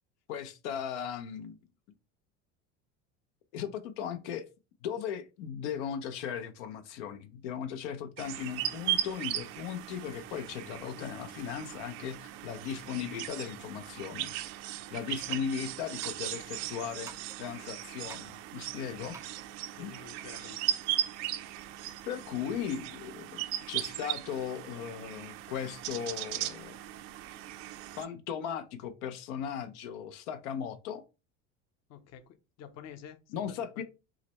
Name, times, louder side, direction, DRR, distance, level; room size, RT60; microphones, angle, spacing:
voice 1, 0.3-1.6 3.5-4.4 4.8-14.3 14.9-17.1 17.4-19.2 19.8-19.9 22.1-26.8 28.0-31.0 33.3-33.8, left 8 dB, 90° left, 0.7 m, -37 dB
sound 1, 8.2-28.1, right 13 dB, 70° right, 0.6 m, -38 dB
sound 2, 15.2-15.5 16.0-16.3 17.1-17.6 18.1-18.4 19.1-19.5 20.2-20.3, right 4 dB, 10° right, 0.3 m, -51 dB
voice 2, 19.7-20.7 31.9-32.2 32.6-33.8, left 8 dB, 50° left, 0.7 m, -49 dB
4.9 x 2.1 x 4.1 m
supercardioid pair, 115°, 35 cm